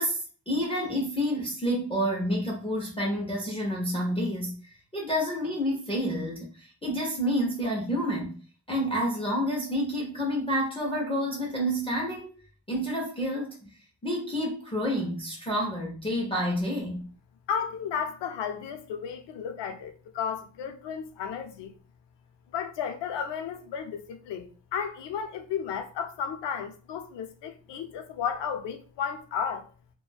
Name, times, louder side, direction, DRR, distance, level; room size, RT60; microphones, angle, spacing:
voice 1, 0.0-4.6 4.9-8.4 8.7-12.3 12.7-13.6 14.0-17.1, equal, 15° left, 0.3 m, -29 dB
voice 2, 17.5-21.7 22.5-29.7, left 7 dB, 60° left, 0.5 m, -33 dB
2.4 x 2.1 x 3.2 m
cardioid pair, 175°, 48 cm